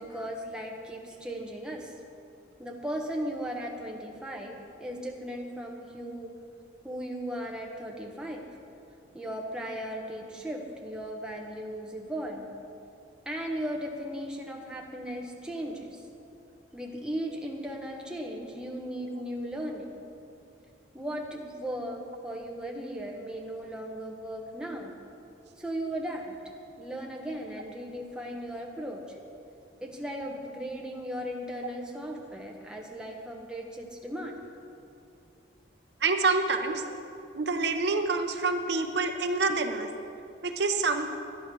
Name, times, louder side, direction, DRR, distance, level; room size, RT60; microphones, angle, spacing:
voice 1, 0.0-1.9 2.6-6.3 6.8-8.5 9.1-12.5 13.2-16.0 16.7-19.9 20.9-24.9 25.6-26.4 26.8-29.2 29.8-34.4, equal, 5° right, -1 dB, 1.1 m, -37 dB
voice 2, 36.0-36.8 37.3-39.9 40.4-41.2, right 3 dB, 65° right, 6 dB, 0.7 m, -27 dB
11.5 x 10.5 x 6.2 m, 2.7 s
head